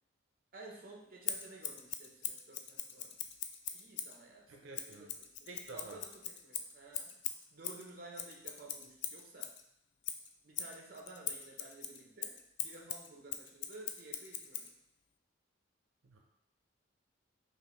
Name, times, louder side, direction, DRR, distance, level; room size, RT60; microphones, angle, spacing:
voice 1, 0.5-3.2 3.7-7.2 7.5-9.5 10.4-12.4 12.6-14.7, right 2 dB, 50° right, -1 dB, 0.8 m, -53 dB
Scissors, 1.2-4.2 4.7-9.6 10.0-14.7, left 9 dB, 65° left, 0.3 m, -41 dB
voice 2, 4.5-5.1 5.5-6.0 16.0-16.2, right 2 dB, 80° right, 0 dB, 0.5 m, -50 dB
5.3 x 2.5 x 3.0 m, 0.81 s
head